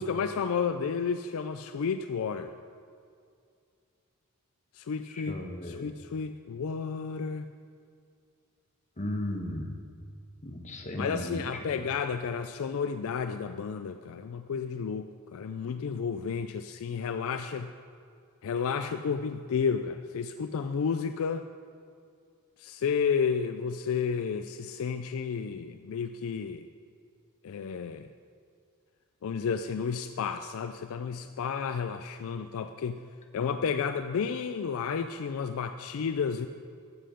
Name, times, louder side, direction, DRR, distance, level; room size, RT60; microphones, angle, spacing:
voice 1, 0.0-2.5 4.7-5.3 5.6-7.4 11.0-17.7 18.4-21.5 22.6-26.7 27.4-28.1 29.2-33.0 33.3-36.5, left 6 dB, 70° left, 9 dB, 0.4 m, -31 dB
voice 2, 5.1-5.9 9.0-9.8 10.4-11.7, left 1 dB, 35° left, 3 dB, 1.1 m, -35 dB
12.5 x 7.8 x 5.0 m, 2.3 s
head